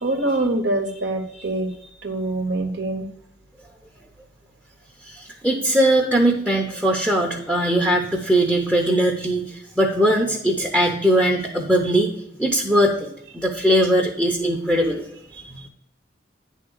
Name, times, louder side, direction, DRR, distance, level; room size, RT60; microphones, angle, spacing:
voice 1, 0.0-1.7 2.0-3.1 15.5-15.7, right 2 dB, 65° right, 4 dB, 0.9 m, -24 dB
voice 2, 5.0-15.0 15.3-15.4, right 1 dB, 5° right, 0 dB, 0.7 m, -20 dB
9.6 x 3.6 x 6.5 m, 0.78 s
head